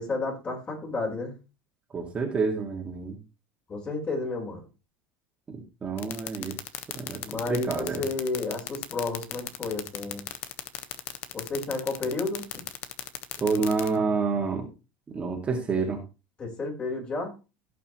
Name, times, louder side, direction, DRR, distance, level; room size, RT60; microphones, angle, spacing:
voice 1, 0.0-1.4 3.7-4.6 7.2-10.2 11.3-12.5 16.4-17.3, left 3 dB, 25° left, -1 dB, 4.4 m, -31 dB
voice 2, 1.9-3.2 5.5-6.6 6.9-8.0 13.4-14.7 15.1-16.0, right 4 dB, 25° right, 1 dB, 2.2 m, -28 dB
sound 1, 6.0-13.9, left 13 dB, 50° left, 1.3 m, -34 dB
16.0 x 6.0 x 3.1 m, 0.29 s
supercardioid pair, 125°, 5 cm